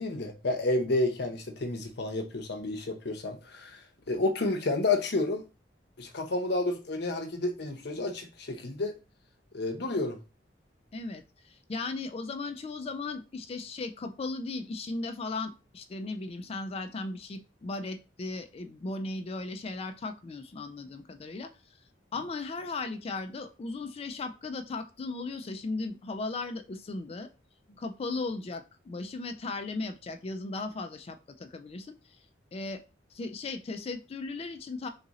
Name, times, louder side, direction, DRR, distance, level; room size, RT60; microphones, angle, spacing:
voice 1, 0.0-3.8 4.1-5.4 6.0-9.0 9.5-10.2, left 2 dB, 65° left, 0.8 m, -30 dB
voice 2, 10.9-21.5 22.1-27.3 27.8-31.9 32.5-32.8 33.1-34.9, left 3 dB, 35° left, 0.3 m, -36 dB
3.9 x 2.5 x 4.0 m
head